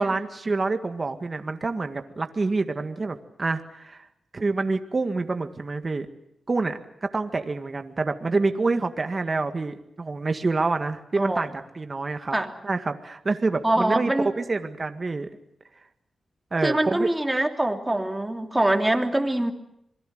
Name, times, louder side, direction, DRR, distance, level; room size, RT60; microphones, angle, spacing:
voice 1, 0.0-4.1 4.3-6.1 6.5-12.4 12.6-15.3 16.5-17.1, right 3 dB, 40° right, 7 dB, 1.9 m, -27 dB
voice 2, 11.2-11.5 12.3-12.5 13.6-14.3 16.6-19.5, right 1 dB, 15° right, 4 dB, 3.2 m, -24 dB
26.5 x 21.5 x 7.9 m, 0.76 s
cardioid pair, 70°, 0 cm